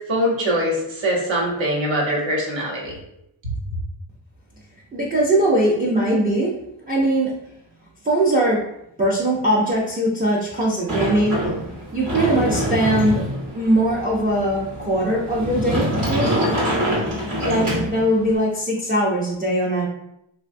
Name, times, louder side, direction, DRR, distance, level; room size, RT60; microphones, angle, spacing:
voice 1, 0.1-3.0, equal, 70° right, -2 dB, 0.9 m, -22 dB
voice 2, 4.9-6.5 6.9-7.3 8.0-8.6 9.0-11.4 11.9-13.2 13.5-16.6 17.4-19.9, right 1 dB, 20° right, -5 dB, 0.3 m, -21 dB
Sliding door, 10.9-18.4, equal, 40° right, 0.8 m, -25 dB
3.1 x 2.2 x 2.5 m, 0.79 s
wide cardioid pair, 155°, 47 cm